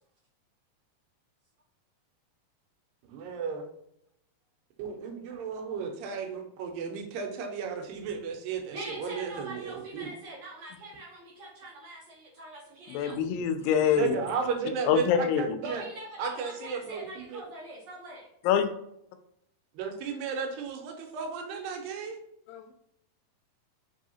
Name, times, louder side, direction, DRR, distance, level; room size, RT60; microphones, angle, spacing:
voice 1, 3.1-3.7 4.8-10.1 13.9-15.9 16.2-17.4 19.8-22.2, right 5 dB, 85° right, 3 dB, 2.4 m, -34 dB
voice 2, 8.7-13.2 15.6-18.3, right 1 dB, 70° right, -5 dB, 1.7 m, -43 dB
voice 3, 12.9-14.2 14.9-15.6 18.5-18.7 22.5-22.7, left 8 dB, 90° left, 7 dB, 2.3 m, -25 dB
5.5 x 2.7 x 2.7 m, 0.75 s
omnidirectional pair, 4.0 m